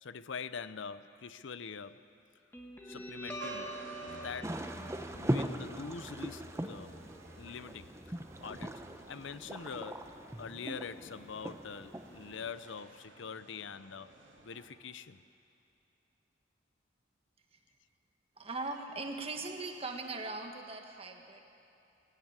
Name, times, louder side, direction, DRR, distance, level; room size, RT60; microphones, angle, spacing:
voice 1, 0.0-2.0 2.8-3.7 4.0-4.7 5.1-7.0 7.4-8.2 8.4-10.1 10.4-14.1 14.4-15.2, left 5 dB, 70° left, 14 dB, 0.6 m, -44 dB
Guitar, 2.5-9.5, equal, 10° left, 1.5 m, -47 dB
sound 1, 3.4-14.7, right 2 dB, 80° right, 2.8 m, -54 dB
sound 2, 4.4-12.5, right 1 dB, 15° right, 0.8 m, -40 dB
voice 2, 18.4-21.4, right 3 dB, 30° right, 4 dB, 1.6 m, -40 dB
19.0 x 17.0 x 8.9 m, 2.7 s
head